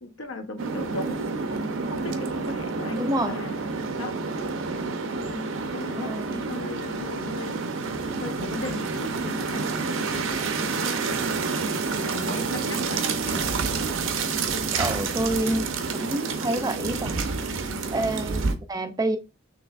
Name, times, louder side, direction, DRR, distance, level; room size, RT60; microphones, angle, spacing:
voice 1, 0.0-3.5 4.0-4.1 5.1-7.6 8.2-11.0 11.9-13.4 14.8-15.1 17.6-17.9, left 2 dB, 80° left, 6 dB, 0.9 m, -37 dB
sound 1, 0.6-18.5, right 4 dB, 75° right, 0.6 m, -29 dB
voice 2, 2.9-3.4 6.0-6.4 13.3-13.4 14.8-15.7 15.9-19.2, right 2 dB, 20° right, 9 dB, 0.3 m, -28 dB
6.0 x 2.9 x 2.4 m, 0.28 s
head